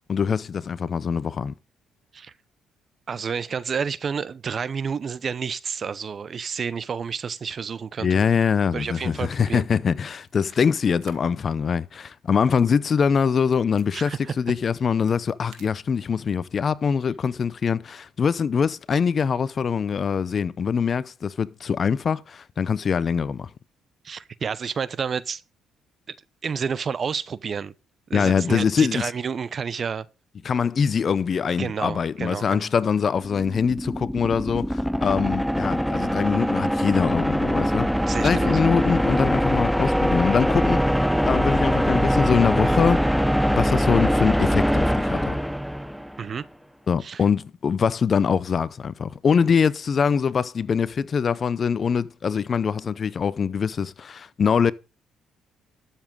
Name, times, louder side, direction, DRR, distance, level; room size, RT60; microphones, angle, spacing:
voice 1, 0.0-1.5 8.0-23.5 28.1-29.1 30.4-37.9 38.2-41.0 41.2-43.0 43.5-45.4 46.9-54.7, left 6 dB, 45° left, 0.6 m, -23 dB
voice 2, 3.1-8.2 8.7-9.6 13.9-14.3 24.0-25.4 26.4-27.7 28.1-30.1 31.6-32.7 38.1-38.6 46.2-46.4 47.0-47.2, right 6 dB, 45° right, 0.8 m, -30 dB
sound 1, 9.7-11.2 11.5-11.6 12.1-13.9 14.7-16.5, right 11 dB, 80° right, 1.7 m, -55 dB
sound 2, 33.2-46.2, equal, ahead, 0.5 m, -23 dB
sound 3, 40.8-47.9, left 10 dB, 85° left, 1.4 m, -56 dB
12.5 x 7.2 x 3.9 m
supercardioid pair, 70°, 0 cm